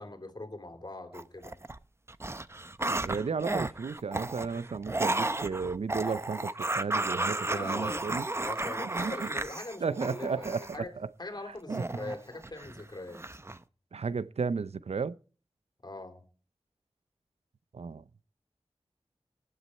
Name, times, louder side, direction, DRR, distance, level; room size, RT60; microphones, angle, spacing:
voice 1, 0.0-1.6 7.4-8.0 8.3-10.9 11.2-13.2 15.8-16.2, left 2 dB, 40° left, 3.3 m, -42 dB
sound 1, 1.1-1.8 2.1-10.8 11.7-12.8 13.1-13.6, right 2 dB, 25° right, 0.7 m, -33 dB
voice 2, 2.9-8.3 8.8-9.3 9.8-11.1 11.7-11.8 13.9-15.2 17.7-18.0, right 5 dB, 80° right, 0.6 m, -34 dB
19.5 x 11.5 x 4.4 m
wide cardioid pair, 65°, 11 cm